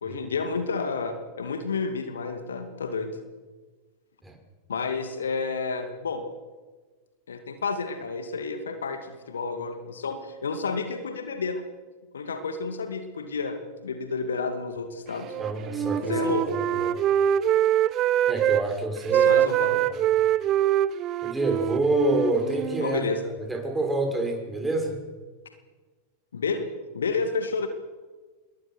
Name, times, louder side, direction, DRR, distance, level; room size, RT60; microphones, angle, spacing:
voice 1, 0.0-3.2 4.7-6.2 7.3-11.6 12.1-15.3 16.0-16.5 19.1-19.8 22.8-23.2 26.3-26.7 26.9-27.7, left 4 dB, 70° left, 7 dB, 2.4 m, -30 dB
Wind instrument woodwind instrument, 15.3-18.6 19.0-22.9, right 11 dB, 35° right, 0.8 m, -24 dB
voice 2, 15.4-17.0 18.3-19.4 19.7-20.0 21.2-23.0 23.4-25.0, right 2 dB, 10° right, 1 dB, 6.4 m, -28 dB
27.5 x 22.0 x 6.2 m, 1.4 s
figure-of-eight pair, 90°, 0 cm